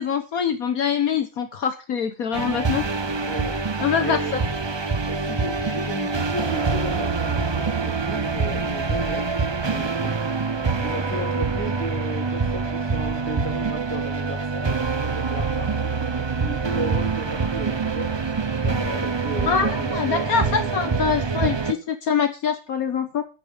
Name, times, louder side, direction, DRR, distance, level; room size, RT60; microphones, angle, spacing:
voice 1, 0.0-2.9 3.8-4.2 19.5-19.7 19.9-23.2, left 7 dB, 65° left, 8 dB, 1.5 m, -24 dB
sound 1, 2.3-21.7, right 4 dB, 40° right, 0.3 m, -25 dB
voice 2, 3.2-4.4 5.0-9.3 9.7-10.1 10.8-18.1 18.6-21.1 21.7-21.8, equal, 5° left, 2 dB, 3.0 m, -35 dB
8.9 x 8.7 x 7.0 m, 0.33 s
omnidirectional pair, 1.6 m